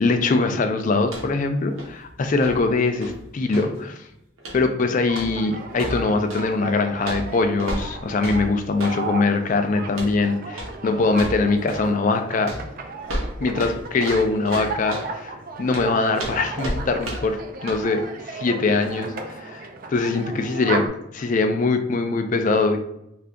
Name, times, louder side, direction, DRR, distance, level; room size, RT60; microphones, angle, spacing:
voice 1, 0.0-4.1 4.5-12.7 13.4-15.3 15.6-20.9 21.1-22.8, left 3 dB, 40° left, 7 dB, 0.3 m, -22 dB
sound 1, 1.0-1.5 1.7-3.8 4.4-4.7 5.1-6.5 7.0-9.0 9.9-10.2 10.5-10.8 11.1-11.9 12.4-15.1 15.7-17.4 17.7-17.8, right 1 dB, 85° right, 0.9 m, -33 dB
sound 2, 5.1-20.9, right 3 dB, 45° right, 0.3 m, -35 dB
2.7 x 2.5 x 3.3 m, 0.82 s
head